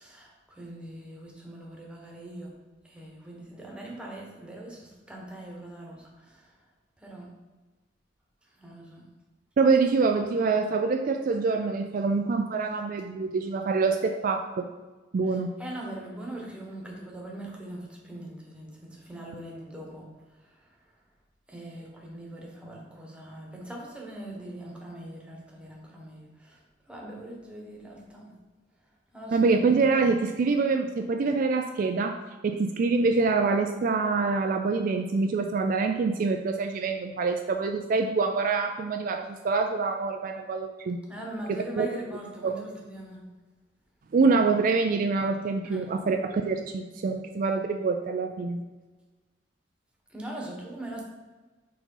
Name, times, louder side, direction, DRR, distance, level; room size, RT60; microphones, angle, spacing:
voice 1, 0.0-2.5 2.8-6.5 7.0-7.3 8.6-9.0 15.3-20.1 21.5-26.6 26.9-28.3 29.1-29.6 41.1-43.2 45.6-45.8 50.1-51.0, right 1 dB, 5° right, -2 dB, 1.1 m, -41 dB
voice 2, 9.6-14.7 15.1-15.5 29.3-32.2 32.4-41.0 41.5-41.9 42.4-42.7 44.1-48.6, right 4 dB, 50° right, 5 dB, 0.3 m, -25 dB
4.7 x 4.1 x 5.4 m, 1.2 s
head